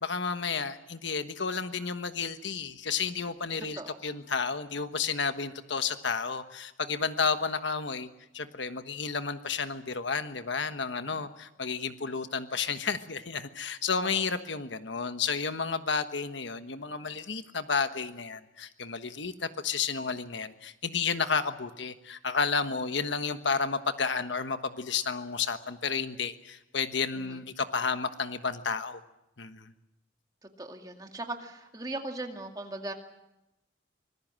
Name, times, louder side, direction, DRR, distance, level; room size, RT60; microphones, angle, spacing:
voice 1, 0.0-29.0 29.4-29.7, left 5 dB, 70° left, 9 dB, 1.3 m, -31 dB
voice 2, 13.9-14.3 27.1-27.4 30.6-32.9, right 2 dB, 20° right, 4 dB, 2.2 m, -39 dB
25.0 x 20.0 x 7.6 m, 0.91 s
head